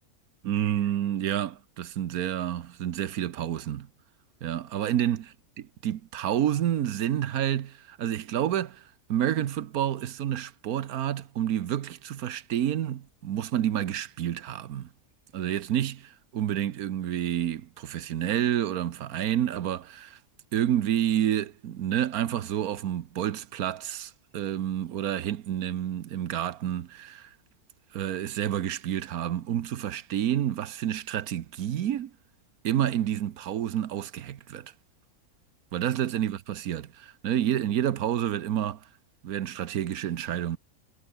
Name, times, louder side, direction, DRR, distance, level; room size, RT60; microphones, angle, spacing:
voice 1, 0.4-3.9 4.4-5.3 5.6-14.9 15.3-20.2 20.5-27.3 27.9-32.1 32.6-34.7 35.7-38.8 39.2-40.6, right 11 dB, 90° right, 1.4 m, -29 dB
omnidirectional pair, 1.5 m